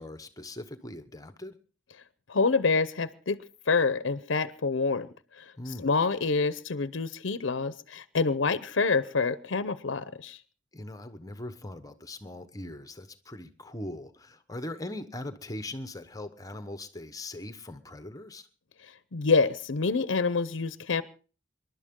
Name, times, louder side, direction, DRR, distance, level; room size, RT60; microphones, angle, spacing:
voice 1, 0.0-1.5 5.6-5.9 10.7-18.5, left 1 dB, 20° left, 10 dB, 1.1 m, -40 dB
voice 2, 2.3-3.4 3.7-5.1 5.4-10.4 19.1-21.0, left 4 dB, 85° left, 14 dB, 0.7 m, -27 dB
26.0 x 11.5 x 3.7 m, 0.37 s
head